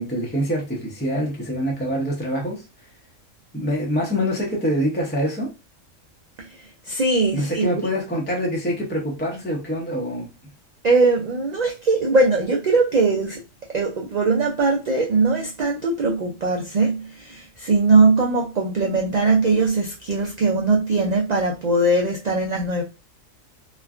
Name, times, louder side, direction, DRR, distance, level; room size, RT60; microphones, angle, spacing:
voice 1, 0.0-2.6 3.5-5.5 7.3-10.3, equal, 15° left, 0.4 m, -25 dB
voice 2, 6.8-7.8 10.8-13.4 13.7-22.8, right 3 dB, 85° right, 0.3 m, -20 dB
3.1 x 2.2 x 2.4 m
omnidirectional pair, 1.4 m